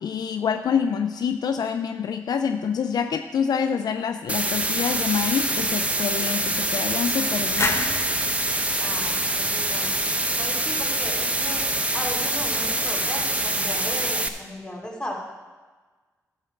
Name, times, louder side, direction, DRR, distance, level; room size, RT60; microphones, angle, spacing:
voice 1, 0.0-7.8, left 7 dB, 70° left, 7 dB, 0.5 m, -26 dB
sound 1, 4.3-14.3, right 1 dB, 20° right, 0.9 m, -25 dB
sound 2, 7.6-10.3, left 3 dB, 40° left, 1.1 m, -31 dB
voice 2, 8.8-9.9 10.4-11.6 11.9-15.1, equal, 10° left, -3 dB, 3.2 m, -36 dB
11.5 x 7.6 x 4.5 m, 1.3 s
cardioid pair, 50°, 7 cm